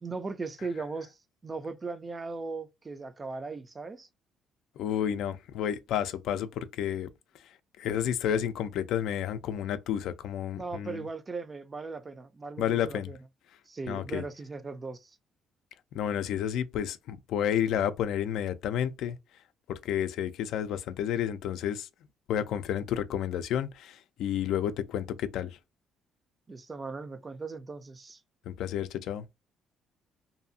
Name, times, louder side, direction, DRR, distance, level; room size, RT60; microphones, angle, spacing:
voice 1, 0.0-4.1 10.5-13.2 13.7-15.2 26.5-28.2, right 4 dB, 25° right, 0.4 m, -38 dB
voice 2, 4.8-7.1 7.8-11.0 12.6-13.1 13.9-14.2 15.9-19.2 19.7-21.9 22.3-25.6 28.5-29.2, left 9 dB, 80° left, 0.3 m, -31 dB
2.6 x 2.4 x 2.6 m
cardioid pair, 115°, 0 cm